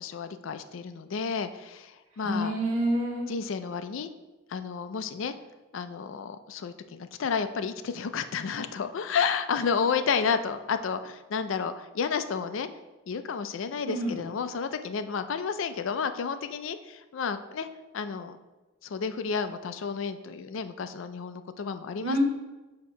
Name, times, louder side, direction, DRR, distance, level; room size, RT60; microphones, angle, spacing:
voice 1, 0.0-2.5 3.3-4.1 4.5-5.3 5.7-12.7 13.1-17.7 17.9-18.4 18.8-22.2, left 6 dB, 75° left, 10 dB, 0.4 m, -31 dB
voice 2, 2.2-3.3 13.8-14.2 22.0-22.2, right 1 dB, 90° right, -1 dB, 1.4 m, -28 dB
6.3 x 2.8 x 5.5 m, 1.1 s
head